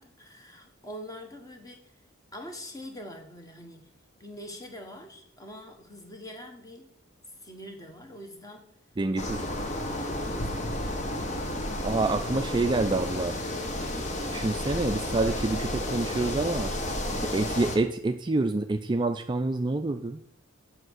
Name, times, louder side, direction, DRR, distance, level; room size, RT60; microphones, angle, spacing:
voice 1, 0.0-1.9 2.3-3.9 4.2-6.9 7.4-8.7 9.9-10.8, equal, 20° left, 3 dB, 1.3 m, -44 dB
voice 2, 9.0-9.5 11.8-13.4 14.3-16.7 17.1-20.2, right 2 dB, 25° right, 7 dB, 0.4 m, -27 dB
sound 1, 9.2-17.8, left 1 dB, 35° left, 1.2 m, -32 dB
7.7 x 5.8 x 6.3 m, 0.67 s
head